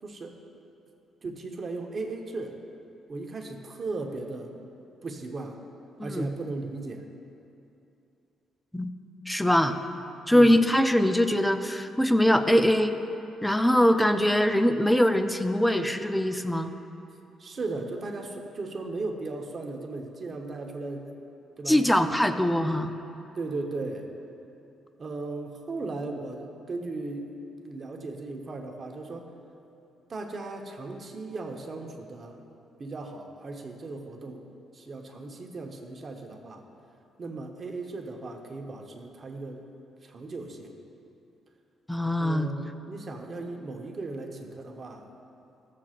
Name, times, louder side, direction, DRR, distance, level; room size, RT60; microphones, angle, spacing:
voice 1, 0.0-0.4 1.2-2.6 3.1-4.5 5.0-5.6 6.0-7.0 10.3-10.6 17.4-21.1 21.6-22.0 23.4-24.1 25.0-27.4 27.6-29.3 30.1-32.4 32.8-34.5 34.7-36.6 37.2-39.6 40.0-40.7 42.2-45.1, right 3 dB, 40° right, 2 dB, 1.0 m, -36 dB
voice 2, 9.3-9.8 10.3-13.0 13.4-16.7 21.7-22.9 41.9-42.5, equal, 5° left, 8 dB, 0.5 m, -22 dB
15.0 x 7.5 x 2.5 m, 2.8 s
cardioid pair, 90°, 0 cm